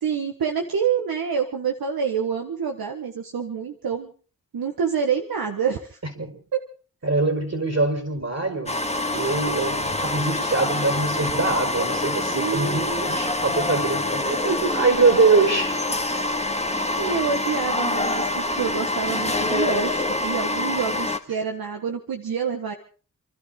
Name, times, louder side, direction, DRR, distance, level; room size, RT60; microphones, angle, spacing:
voice 1, 0.0-4.1 4.5-6.0 12.3-13.1 14.4-14.7 17.0-22.7, right 6 dB, 90° right, 4 dB, 1.5 m, -27 dB
voice 2, 7.0-8.8 9.1-14.4 14.7-15.8, right 3 dB, 50° right, 5 dB, 5.4 m, -23 dB
sound 1, 8.7-21.2, left 2 dB, 20° left, 2.0 m, -26 dB
28.5 x 12.5 x 3.9 m, 0.39 s
cardioid pair, 50°, 35 cm